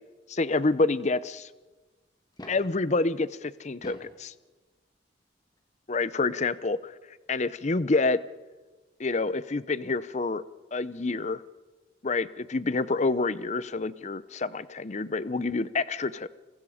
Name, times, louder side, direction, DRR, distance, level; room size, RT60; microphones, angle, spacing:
voice 1, 0.3-1.5 2.5-4.3 5.9-6.9 7.3-8.2 9.0-10.4 10.7-11.4 12.0-16.3, left 3 dB, 35° left, 17 dB, 0.6 m, -27 dB
sound 1, 2.2-2.8 3.6-4.2 5.5-5.6 7.4-7.5 7.7-7.8, left 1 dB, 20° left, 2.5 m, -46 dB
29.5 x 23.5 x 5.0 m, 1.2 s
head